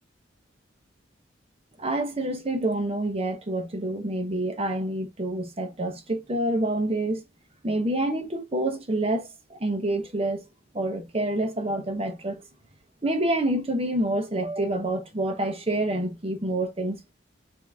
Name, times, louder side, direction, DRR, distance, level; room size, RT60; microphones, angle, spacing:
voice 1, 1.8-7.2 7.6-10.4 10.7-12.4 13.0-17.1, right 1 dB, 30° right, 1.0 m, -27 dB
5.4 x 2.7 x 3.6 m
head